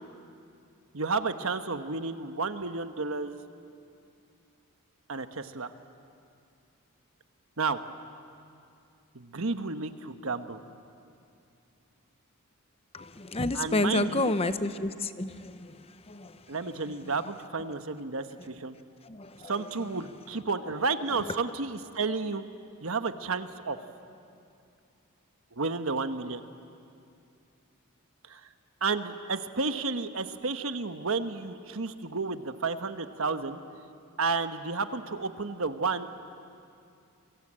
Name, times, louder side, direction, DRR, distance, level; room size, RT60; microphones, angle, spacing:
voice 1, 0.9-3.4 5.1-5.7 7.6-7.8 9.1-10.6 13.5-14.3 16.5-18.8 19.4-22.4 22.8-23.8 25.6-26.4 28.3-28.5 28.8-33.6 34.2-36.1, right 4 dB, 65° right, 9 dB, 1.2 m, -31 dB
voice 2, 12.9-17.1 17.7-17.8 18.4-18.5 19.0-19.5 20.6-20.7 21.1-21.4, left 2 dB, 25° left, 11 dB, 0.8 m, -31 dB
28.0 x 23.5 x 8.8 m, 2.5 s
head